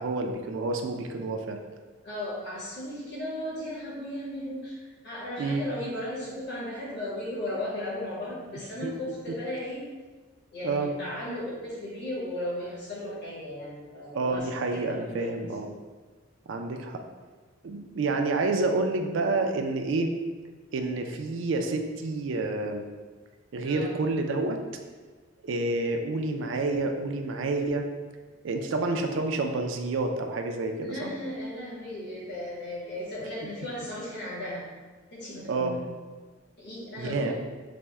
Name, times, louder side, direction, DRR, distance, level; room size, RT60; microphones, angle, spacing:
voice 1, 0.0-1.6 5.4-5.6 8.8-8.9 10.6-10.9 14.1-15.7 16.5-17.0 17.6-20.1 20.7-22.9 23.5-24.6 25.4-27.8 28.4-31.1 35.5-35.7 37.0-37.3, right 3 dB, 65° right, 4 dB, 0.4 m, -29 dB
voice 2, 2.0-9.9 10.5-15.5 23.6-24.0 30.8-34.6 35.1-35.8 36.6-37.3, left 1 dB, 55° left, -7 dB, 1.3 m, -36 dB
4.2 x 2.1 x 3.4 m, 1.3 s
head